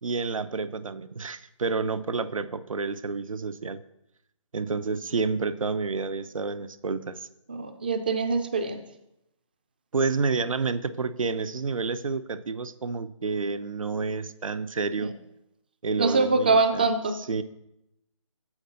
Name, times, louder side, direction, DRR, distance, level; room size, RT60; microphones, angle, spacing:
voice 1, 0.0-3.8 4.5-7.3 9.9-15.1 15.8-16.9 17.3-17.4, right 4 dB, 85° right, 13 dB, 0.6 m, -29 dB
voice 2, 7.5-8.8 16.0-17.2, right 3 dB, 20° right, 7 dB, 0.4 m, -24 dB
7.2 x 5.3 x 6.6 m, 0.82 s
figure-of-eight pair, 160°, 17 cm